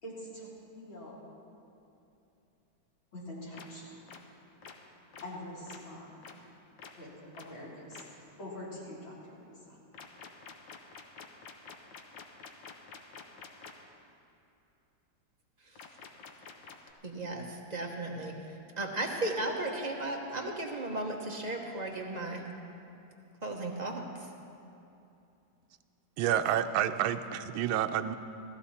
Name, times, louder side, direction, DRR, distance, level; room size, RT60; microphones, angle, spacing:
voice 1, 0.0-1.3 3.1-4.0 5.2-6.2 7.0-9.8, left 1 dB, 90° left, -7 dB, 4.5 m, -45 dB
sound 1, 3.5-3.7 4.1-4.2 4.6-4.7 5.1-5.2 5.7-5.8 6.2-6.3 6.8-6.9 7.4-7.5 7.9-8.0 9.9-13.7 15.8-16.9, left 6 dB, 75° left, 1.6 m, -47 dB
voice 2, 17.0-18.3 18.8-22.4 23.4-24.1, right 2 dB, 30° right, 0 dB, 0.9 m, -35 dB
voice 3, 26.2-28.1, right 10 dB, 85° right, 8 dB, 1.4 m, -29 dB
15.5 x 14.5 x 4.2 m, 2.8 s
omnidirectional pair, 2.1 m